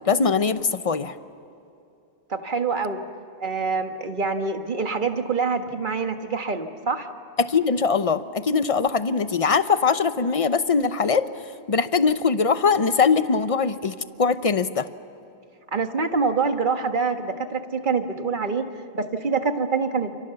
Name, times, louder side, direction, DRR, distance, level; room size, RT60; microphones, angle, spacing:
voice 1, 0.0-1.2 7.4-11.3 11.7-14.9, left 5 dB, 35° left, 11 dB, 0.8 m, -21 dB
voice 2, 2.3-3.0 3.4-7.1 15.7-18.7 18.9-20.1, right 4 dB, 45° right, 6 dB, 1.7 m, -25 dB
29.5 x 29.0 x 7.0 m, 2.7 s
omnidirectional pair, 1.2 m